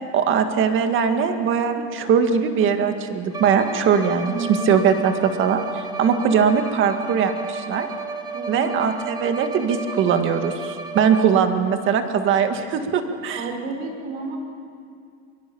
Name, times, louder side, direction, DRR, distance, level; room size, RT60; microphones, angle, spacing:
voice 1, 0.1-7.9 8.5-13.4, right 7 dB, 40° right, 7 dB, 2.0 m, -21 dB
Bowed string instrument, 3.3-11.6, right 3 dB, 15° right, 1.2 m, -33 dB
voice 2, 4.2-4.7 8.3-8.8 13.3-14.4, right 3 dB, 70° right, 3 dB, 5.4 m, -31 dB
23.5 x 23.0 x 7.1 m, 2.3 s
cardioid pair, 155°, 30 cm